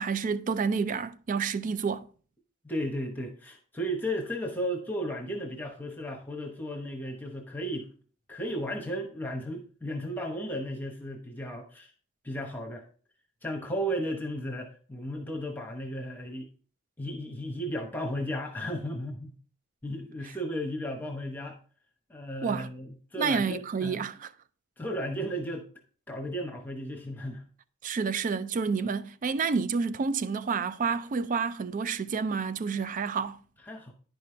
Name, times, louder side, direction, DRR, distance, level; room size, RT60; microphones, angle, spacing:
voice 1, 0.0-2.1 22.4-22.7 23.2-24.3 27.8-33.4, right 5 dB, 35° right, 0.3 m, -29 dB
voice 2, 2.6-7.9 8.3-11.9 12.2-12.9 13.4-16.5 17.0-19.4 19.8-21.6 22.1-24.0 24.8-25.7 26.1-27.5 33.6-33.9, equal, 10° left, 0.9 m, -34 dB
10.5 x 5.4 x 3.2 m
head